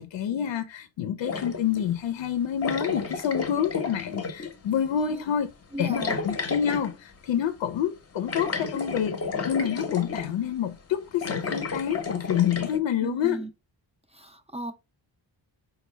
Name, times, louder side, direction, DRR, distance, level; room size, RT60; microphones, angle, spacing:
voice 1, 0.0-5.5 5.8-9.2 9.5-13.4, left 9 dB, 70° left, 0.6 m, -28 dB
sound 1, 1.2-1.9 2.6-4.5 5.9-6.9 8.3-10.3 11.1-12.8, left 4 dB, 35° left, 0.7 m, -32 dB
voice 2, 5.7-6.2 13.0-13.5 14.1-14.7, right 1 dB, 15° right, 0.5 m, -35 dB
4.4 x 2.3 x 3.1 m
cardioid pair, 90°, 45 cm